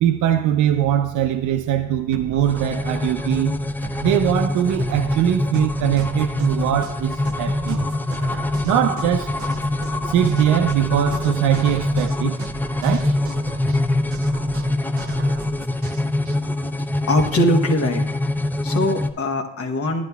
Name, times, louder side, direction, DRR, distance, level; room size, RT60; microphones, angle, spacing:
voice 1, 0.0-3.6 4.0-7.9 8.6-9.3 10.0-12.4 12.8-13.1, right 10 dB, 85° right, 0.5 m, -21 dB
sound 1, 2.1-16.4, right 4 dB, 50° right, 0.9 m, -37 dB
sound 2, 2.4-19.1, left 2 dB, 5° left, 0.3 m, -24 dB
voice 2, 17.1-18.0 18.6-20.1, left 1 dB, 50° left, 1.0 m, -21 dB
11.0 x 10.5 x 2.3 m
cardioid pair, 90°, 30 cm